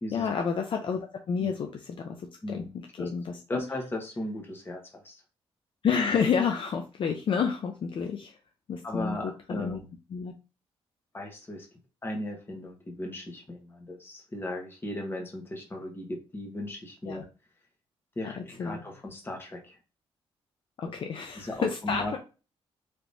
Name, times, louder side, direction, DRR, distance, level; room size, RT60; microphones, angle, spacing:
voice 1, 0.1-2.6 3.0-3.6 5.8-8.4 8.7-9.8 10.1-10.3 17.1-17.2 18.2-18.8 20.8-22.2, left 6 dB, 55° left, 4 dB, 0.5 m, -30 dB
voice 2, 2.4-2.7 3.0-3.1 3.5-5.2 8.8-9.9 11.1-11.7 12.0-17.2 18.2-19.8 21.4-22.1, left 1 dB, 20° left, 1 dB, 1.1 m, -37 dB
3.4 x 2.9 x 2.6 m, 0.32 s
cardioid pair, 130°, 11 cm